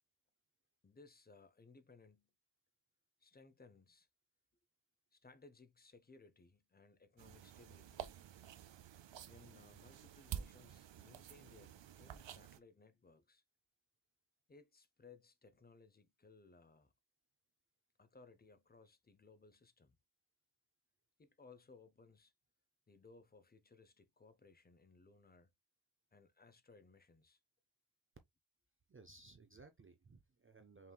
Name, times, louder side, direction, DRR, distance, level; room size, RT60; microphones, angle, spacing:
voice 1, 0.8-2.3 3.2-4.1 5.1-8.1 9.3-13.4 14.5-16.9 18.0-20.0 21.2-22.3 22.9-25.5 26.1-27.4, left 4 dB, 20° left, 0.5 m, -63 dB
sound 1, 7.2-12.6, right 9 dB, 70° right, 0.6 m, -50 dB
voice 2, 28.9-30.9, right 3 dB, 30° right, 0.5 m, -60 dB
5.6 x 3.1 x 2.2 m
wide cardioid pair, 165°, 46 cm